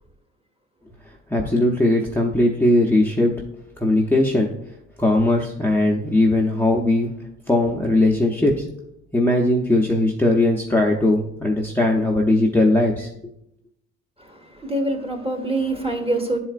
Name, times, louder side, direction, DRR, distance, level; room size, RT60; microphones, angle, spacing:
voice 1, 1.3-3.3 3.8-4.5 5.0-7.1 7.5-8.6 9.1-13.1, left 1 dB, 5° left, 0.7 m, -19 dB
voice 2, 14.2-16.4, right 2 dB, 20° right, 1.2 m, -25 dB
10.0 x 4.3 x 2.4 m
cardioid pair, 90°, 30 cm